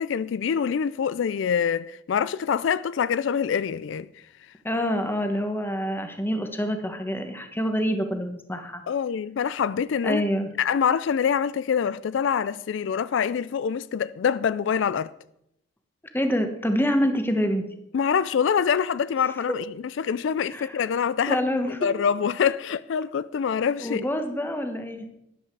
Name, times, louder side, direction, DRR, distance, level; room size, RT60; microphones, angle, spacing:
voice 1, 0.0-4.1 8.9-10.2 10.6-15.1 17.9-19.6 20.0-21.4 21.8-24.1, left 7 dB, 65° left, 0.4 m, -25 dB
voice 2, 4.6-8.8 10.0-10.5 16.1-17.6 19.5-19.6 20.5-20.8 21.3-21.9 23.8-25.1, equal, 10° left, 1.3 m, -26 dB
12.5 x 11.0 x 4.7 m
head